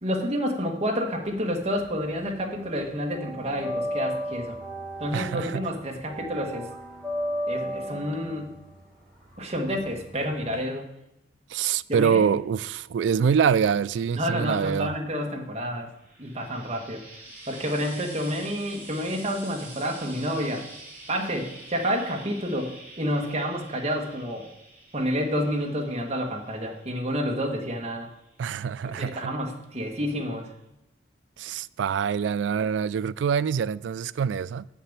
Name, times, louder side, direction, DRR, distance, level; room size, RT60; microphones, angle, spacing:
voice 1, 0.0-4.6 5.0-6.7 7.5-8.5 9.4-10.9 11.9-12.2 14.1-15.9 16.2-20.6 21.1-24.5 24.9-28.1 28.9-30.5, equal, 35° right, 1.5 m, -29 dB
sound 1, 1.3-2.4 2.6-10.5, equal, 5° left, 3.1 m, -34 dB
voice 2, 5.1-5.7 11.5-14.9 28.4-29.4 31.4-34.7, right 7 dB, 85° right, 0.3 m, -25 dB
Frying (food), 15.8-29.3 30.2-30.3, right 2 dB, 10° right, 2.9 m, -47 dB
7.2 x 6.7 x 7.3 m
head